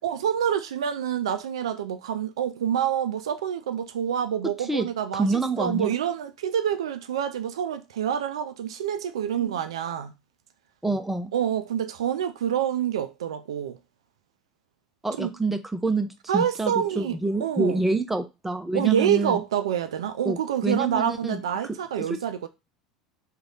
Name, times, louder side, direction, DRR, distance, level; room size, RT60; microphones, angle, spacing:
voice 1, 0.0-5.3 5.6-10.1 11.3-13.8 15.2-15.3 16.3-17.8 18.7-22.5, right 9 dB, 70° right, 0.3 m, -27 dB
voice 2, 5.1-5.9 9.3-9.5 10.8-11.3 15.0-19.4 20.2-20.4 20.6-22.2, right 2 dB, 5° right, 0.5 m, -27 dB
3.2 x 2.3 x 3.8 m
figure-of-eight pair, 75°, 3 cm